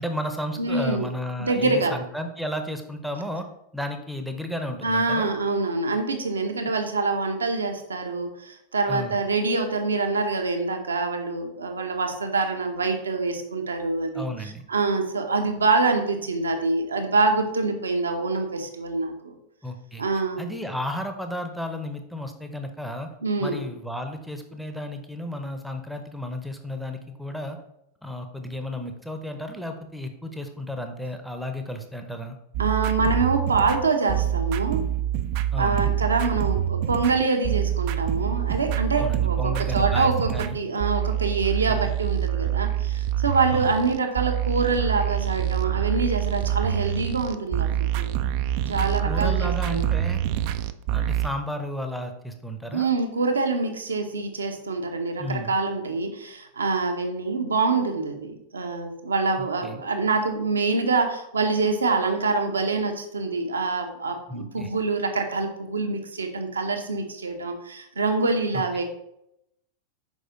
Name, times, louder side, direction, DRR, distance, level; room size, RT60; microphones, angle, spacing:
voice 1, 0.0-3.5 3.7-5.3 8.9-9.2 14.1-14.6 19.6-20.0 20.4-23.1 23.4-27.6 28.0-32.4 35.5-35.9 39.0-40.6 41.7-41.9 43.5-43.7 49.0-50.2 50.9-52.9 55.2-55.5 59.4-59.8 64.3-64.7 68.5-68.6, left 1 dB, ahead, 6 dB, 0.7 m, -33 dB
voice 2, 0.6-1.0 1.4-1.9 4.8-19.4 20.0-20.5 23.2-23.6 32.6-34.8 35.5-40.3 40.5-47.7 47.9-48.1 48.7-49.8 52.7-68.8, right 3 dB, 75° right, 5 dB, 0.9 m, -25 dB
sound 1, 32.5-51.3, right 11 dB, 45° right, 0.4 m, -26 dB
6.3 x 4.9 x 3.8 m, 0.80 s
figure-of-eight pair, 90°, 0 cm